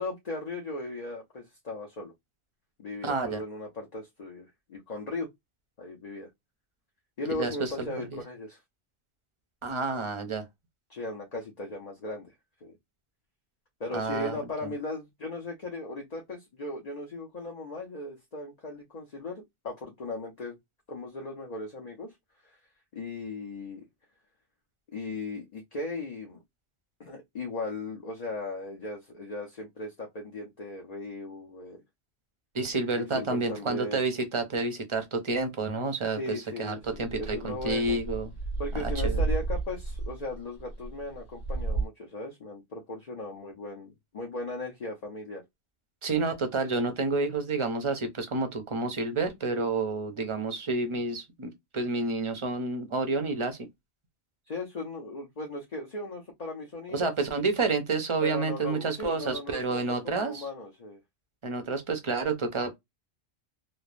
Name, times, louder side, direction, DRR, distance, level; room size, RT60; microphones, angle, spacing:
voice 1, 0.0-2.1 2.8-5.3 5.8-6.3 7.2-8.6 10.9-12.3 12.6-12.7 13.8-20.6 20.9-22.1 22.4-22.6 22.9-23.8 24.9-26.4 27.0-31.8 33.0-34.0 36.1-38.0 38.6-45.4 54.5-57.1 58.2-61.0, left 2 dB, 45° left, 0.7 m, -37 dB
voice 2, 3.0-3.4 7.3-7.9 8.1-8.2 9.6-10.4 13.9-14.7 32.5-38.3 38.7-39.2 46.0-53.7 56.9-60.5 61.4-62.8, right 3 dB, 35° right, 0.6 m, -29 dB
sound 1, 36.8-41.9, right 3 dB, 65° left, 1.5 m, -32 dB
3.1 x 2.0 x 2.4 m
omnidirectional pair, 1.1 m